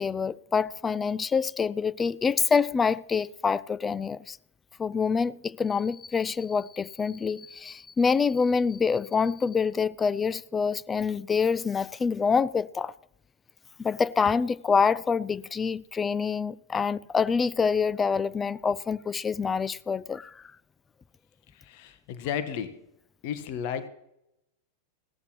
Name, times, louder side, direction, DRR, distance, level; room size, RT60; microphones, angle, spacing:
voice 1, 0.0-4.4 4.8-12.9 13.8-20.4, left 5 dB, 15° left, 0.4 m, -26 dB
voice 2, 21.5-22.8 23.2-23.9, left 8 dB, 45° left, 1.3 m, -33 dB
17.5 x 14.0 x 3.1 m
figure-of-eight pair, 90°, 0 cm